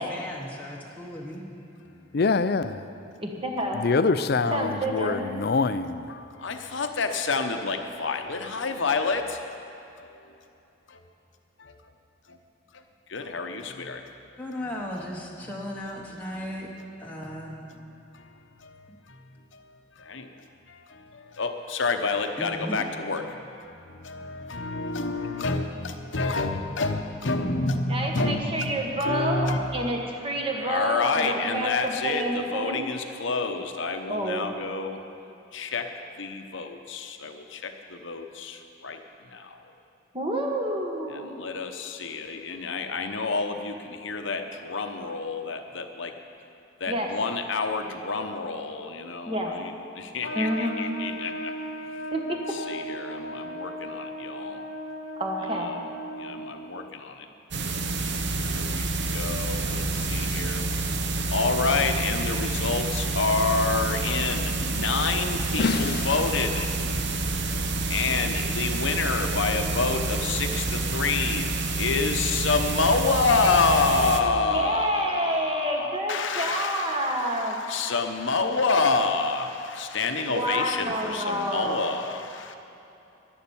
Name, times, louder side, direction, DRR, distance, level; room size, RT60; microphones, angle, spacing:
voice 1, 0.0-1.6 14.4-16.7 17.0-17.6 18.9-19.0 22.4-22.8, equal, 10° left, -3 dB, 1.0 m, -36 dB
voice 2, 2.1-2.8 3.7-6.1 65.6-66.1, left 4 dB, 50° left, 12 dB, 0.4 m, -25 dB
voice 3, 3.2-3.8 4.5-5.3 27.9-32.8 34.1-34.5 40.1-41.4 46.9-47.1 49.3-49.5 50.3-50.8 52.1-52.4 55.2-55.7 74.5-77.6 80.3-81.9, right 1 dB, 25° right, 1 dB, 1.5 m, -28 dB
voice 4, 6.1-9.4 10.0-10.2 10.9-11.0 11.6-11.7 12.3-12.4 13.1-14.0 17.3-17.4 18.1-18.3 18.6-18.8 19.1-19.2 20.0-20.3 20.7-23.5 23.8-28.7 29.0-29.6 30.6-35.0 35.5-35.9 36.2-39.0 39.3-39.6 41.1-46.1 46.8-51.5 52.5-54.6 55.6-55.8 56.2-57.3 58.5-60.7 61.3-66.7 67.9-71.5 71.8-82.6, left 4 dB, 65° left, 6 dB, 0.9 m, -28 dB
Trumpet, 50.2-56.7, equal, 85° left, 1.2 m, -36 dB
sound 1, 57.5-74.2, right 2 dB, 55° right, 0.9 m, -28 dB
12.0 x 11.0 x 7.1 m, 2.8 s
head